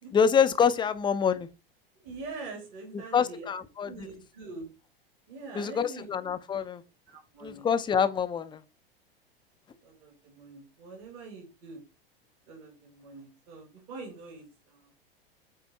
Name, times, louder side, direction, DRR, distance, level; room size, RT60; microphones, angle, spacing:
voice 1, 0.1-1.5 2.9-4.1 5.5-6.8 7.4-8.6, left 7 dB, 15° left, 0.6 m, -26 dB
voice 2, 2.0-3.4 3.8-4.7 5.3-6.1 7.1-7.7 9.8-11.8 12.5-14.9, right 3 dB, 50° right, 2.7 m, -44 dB
8.4 x 3.5 x 4.3 m
figure-of-eight pair, 90°, 29 cm